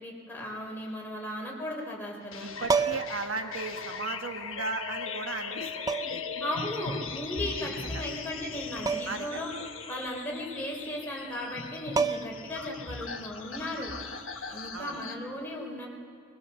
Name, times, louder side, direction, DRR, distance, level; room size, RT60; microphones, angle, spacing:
voice 1, 0.0-2.5 6.4-9.5 9.9-13.9 14.5-15.9, left 1 dB, 10° left, -2 dB, 3.8 m, -36 dB
sound 1, 2.3-15.1, left 5 dB, 80° left, 1.3 m, -39 dB
voice 2, 2.4-6.2 7.6-8.0 9.1-9.5 14.7-15.0, right 4 dB, 75° right, 5 dB, 1.3 m, -36 dB
sound 2, 2.6-3.3 4.6-4.7 5.9-6.3 8.9-9.3 9.6-9.7 11.5-11.6 12.0-12.5 14.5-14.7, right 5 dB, 20° right, 0.5 m, -29 dB
21.5 x 20.5 x 6.9 m, 2.3 s
head